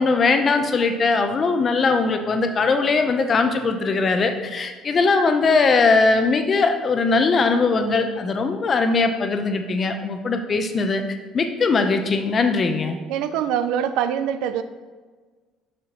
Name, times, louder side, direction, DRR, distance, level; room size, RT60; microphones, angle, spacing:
voice 1, 0.0-11.0 11.3-13.0, left 4 dB, 35° left, 7 dB, 0.6 m, -20 dB
voice 2, 13.1-14.6, right 9 dB, 80° right, 11 dB, 0.4 m, -24 dB
6.2 x 5.6 x 3.0 m, 1.4 s
supercardioid pair, 100°, 0 cm